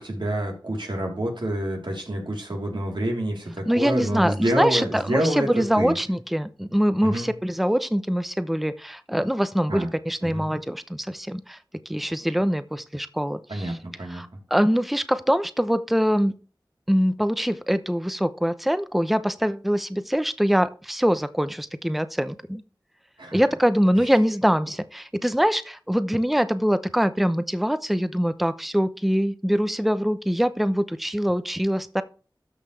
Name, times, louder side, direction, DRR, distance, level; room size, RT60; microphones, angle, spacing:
voice 1, 0.0-5.9 7.0-7.3 9.7-9.9 10.2-10.4 13.5-14.3 23.2-23.4, right 1 dB, 80° right, -1 dB, 3.6 m, -28 dB
voice 2, 3.7-11.6 11.9-13.8 14.1-16.3 16.9-22.6 23.3-32.0, equal, ahead, 12 dB, 0.7 m, -23 dB
13.0 x 5.6 x 3.3 m, 0.36 s
wide cardioid pair, 45°, 8 cm